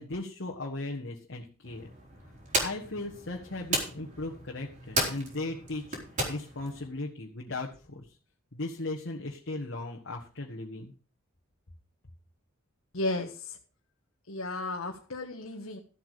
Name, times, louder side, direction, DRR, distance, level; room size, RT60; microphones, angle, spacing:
voice 1, 0.0-1.9 2.6-6.0 6.3-8.0 8.5-10.9, left 2 dB, 60° left, 0 dB, 1.6 m, -37 dB
sound 1, 1.6-6.9, right 2 dB, 40° right, 4.1 m, -35 dB
voice 2, 12.9-13.6 14.3-15.8, left 2 dB, 85° left, 0 dB, 1.5 m, -34 dB
13.0 x 8.2 x 5.0 m, 0.38 s
head